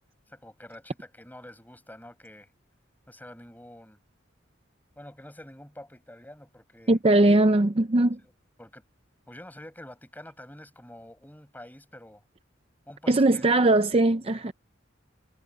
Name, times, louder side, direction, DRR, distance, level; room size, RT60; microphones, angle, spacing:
voice 1, 0.3-2.5 3.1-4.0 5.0-7.0 8.2-8.3 8.6-8.8 9.3-12.2 12.9-13.4, left 1 dB, 10° left, 7.4 m, -47 dB
voice 2, 6.9-8.2 13.1-14.5, right 2 dB, 30° right, 0.6 m, -20 dB
head